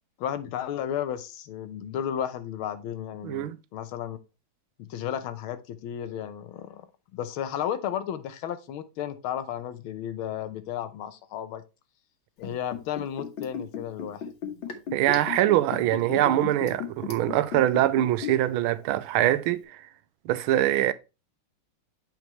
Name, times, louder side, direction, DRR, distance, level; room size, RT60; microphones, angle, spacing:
voice 1, 0.2-4.2 4.8-6.9 7.1-11.6 12.4-14.2, left 10 dB, 85° left, 1.6 m, -33 dB
voice 2, 3.2-3.6 14.9-19.8 20.2-20.9, right 13 dB, 90° right, 1.4 m, -23 dB
Liquid, 12.4-18.6 18.8-18.9, left 6 dB, 70° left, 2.1 m, -35 dB
7.6 x 5.2 x 3.1 m
omnidirectional pair, 2.2 m